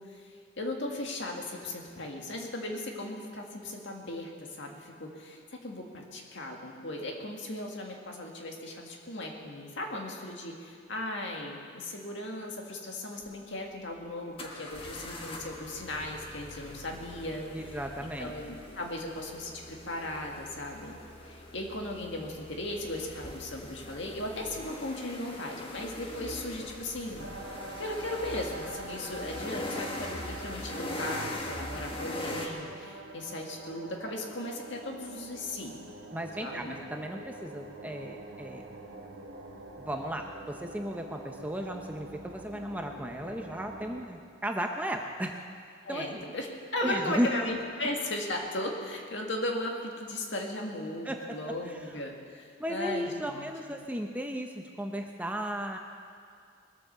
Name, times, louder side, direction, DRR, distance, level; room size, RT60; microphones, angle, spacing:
voice 1, 0.0-17.5 18.2-21.0 21.2-27.3 27.8-35.8 36.4-36.8 45.8-46.5 46.7-53.5, left 1 dB, 60° left, 1 dB, 2.0 m, -37 dB
sound 1, 13.2-13.3 14.4-32.5, left 1 dB, 25° left, 1.4 m, -42 dB
voice 2, 17.5-18.3 36.1-38.6 39.8-45.4 45.9-46.2 46.8-47.4 51.0-51.4 51.7-51.8 52.6-55.8, equal, 10° right, 3 dB, 0.7 m, -35 dB
sound 2, 27.2-44.0, right 2 dB, 70° right, 1.6 m, -45 dB
20.5 x 8.6 x 6.8 m, 2.2 s
head